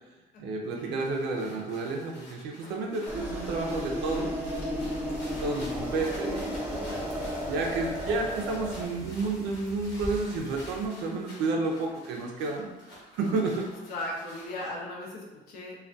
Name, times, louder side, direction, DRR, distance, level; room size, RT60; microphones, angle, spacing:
voice 1, 0.4-4.3 5.4-7.0 7.5-13.7, right 3 dB, 90° right, 0 dB, 0.4 m, -31 dB
sound 1, 0.6-14.7, left 1 dB, 85° left, 1.0 m, -50 dB
sound 2, 3.1-8.9, equal, 10° right, 0.5 m, -34 dB
sound 3, 5.0-10.9, left 1 dB, 20° left, 0.7 m, -45 dB
voice 2, 13.9-15.8, left 1 dB, 60° left, -2 dB, 0.6 m, -37 dB
2.3 x 2.2 x 2.5 m, 1.2 s
cardioid pair, 110°, 17 cm